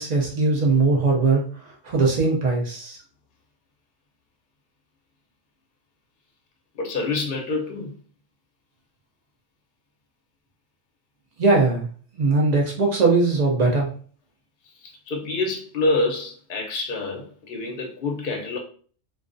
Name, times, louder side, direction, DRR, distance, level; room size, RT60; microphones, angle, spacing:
voice 1, 0.0-3.0 11.4-11.9 12.1-13.9, right 3 dB, 70° right, 0.4 m, -20 dB
voice 2, 6.8-7.9 15.1-18.6, left 2 dB, 50° left, 0.7 m, -26 dB
2.3 x 2.3 x 2.5 m
omnidirectional pair, 1.3 m